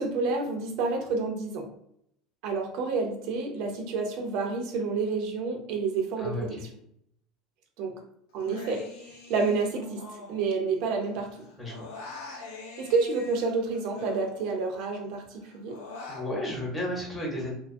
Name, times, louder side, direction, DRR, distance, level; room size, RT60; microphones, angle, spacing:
voice 1, 0.0-1.7 2.4-6.7 7.8-7.9 8.3-8.9 9.3-10.0 10.3-11.3 12.8-15.8, right 4 dB, 60° right, 3 dB, 0.4 m, -29 dB
Human voice, 8.4-11.0 11.3-14.8 15.2-16.3, left 3 dB, 90° left, 0.6 m, -44 dB
voice 2, 16.1-17.5, left 1 dB, 10° left, -4 dB, 0.9 m, -32 dB
2.6 x 2.3 x 2.5 m, 0.72 s
cardioid pair, 155°, 0 cm